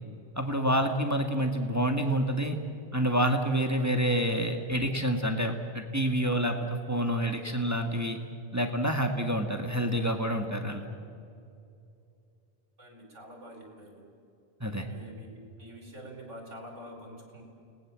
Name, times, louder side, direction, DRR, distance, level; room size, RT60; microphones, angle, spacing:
voice 1, 0.4-2.6 2.9-6.6 6.9-8.2 8.5-10.9 14.6-14.9, equal, 15° right, 4 dB, 1.8 m, -28 dB
voice 2, 12.8-14.1 14.9-17.4, equal, 80° right, 2 dB, 5.3 m, -46 dB
29.5 x 19.5 x 7.6 m, 2.6 s
omnidirectional pair, 1.2 m